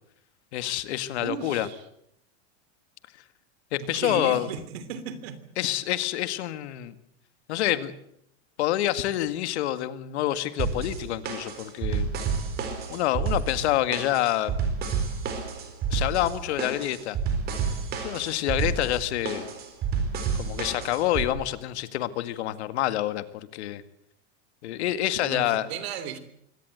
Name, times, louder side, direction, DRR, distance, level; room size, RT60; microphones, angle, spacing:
voice 1, 0.5-1.7 3.7-4.5 5.6-6.9 7.5-7.9 8.6-12.1 12.9-14.6 15.9-17.2 18.0-19.5 20.3-23.8 24.6-25.7, left 14 dB, 70° left, 12 dB, 2.0 m, -27 dB
voice 2, 1.2-1.8 3.8-5.4 25.2-26.2, right 8 dB, 60° right, 13 dB, 3.1 m, -35 dB
sound 1, 10.6-21.3, right 5 dB, 30° right, 4.2 m, -30 dB
24.0 x 18.0 x 8.0 m, 0.73 s
supercardioid pair, 170°, 35 cm